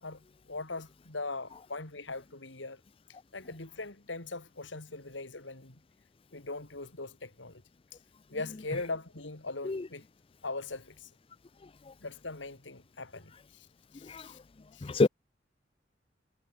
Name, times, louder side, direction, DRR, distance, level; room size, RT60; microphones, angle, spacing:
voice 1, 0.5-2.8 3.3-5.8 6.3-7.6 8.3-10.0 10.4-11.1 12.0-13.7 13.9-14.4 14.7-15.0, left 3 dB, 85° left, 3.2 m, -40 dB
voice 2, 9.7-9.8 14.1-14.3 14.8-15.1, left 3 dB, 30° left, 0.5 m, -26 dB
head